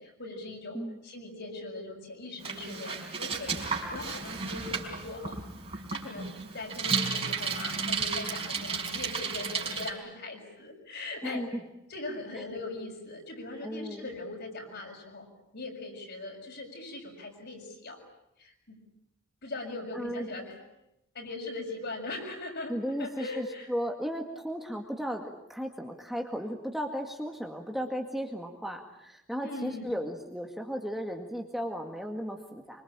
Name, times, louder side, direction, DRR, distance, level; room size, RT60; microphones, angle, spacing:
voice 1, 0.0-5.4 5.7-6.3 6.5-11.4 11.9-15.3 15.5-18.0 18.4-18.8 19.4-20.6 21.1-23.7 29.4-29.9, left 2 dB, 55° left, 2 dB, 7.1 m, -40 dB
Bicycle, 2.4-9.9, right 5 dB, 30° right, 4.6 m, -33 dB
voice 2, 11.2-11.6 12.3-12.4 13.6-14.1 19.9-20.3 22.7-32.8, equal, ahead, 2 dB, 2.0 m, -35 dB
26.0 x 25.0 x 8.9 m, 0.84 s
head